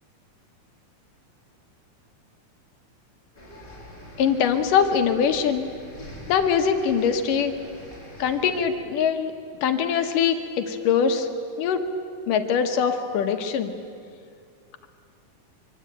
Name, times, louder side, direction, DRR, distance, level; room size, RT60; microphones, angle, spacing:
sound 1, 3.3-8.6, equal, 15° left, 4.8 m, -44 dB
voice 1, 4.2-5.7 6.3-7.5 8.2-9.3 9.6-11.3 11.6-11.9 12.3-13.7, left 7 dB, 85° left, 6 dB, 3.0 m, -22 dB
25.5 x 24.0 x 9.1 m, 2.3 s
omnidirectional pair, 3.7 m